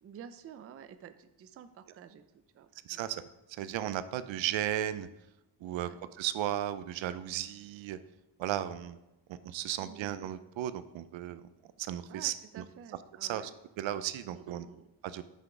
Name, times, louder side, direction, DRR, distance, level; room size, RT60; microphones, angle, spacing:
voice 1, 0.0-3.0 5.7-6.0 9.8-10.1 12.1-13.5 14.3-14.9, right 8 dB, 35° right, 10 dB, 0.4 m, -51 dB
voice 2, 2.9-5.1 5.6-5.9 6.2-8.0 8.4-9.0 9.3-11.5 11.8-12.6 13.2-13.5 13.8-14.7 15.0-15.2, right 12 dB, 80° right, 13 dB, 0.6 m, -35 dB
6.0 x 5.6 x 4.8 m, 0.93 s
cardioid pair, 140°, 46 cm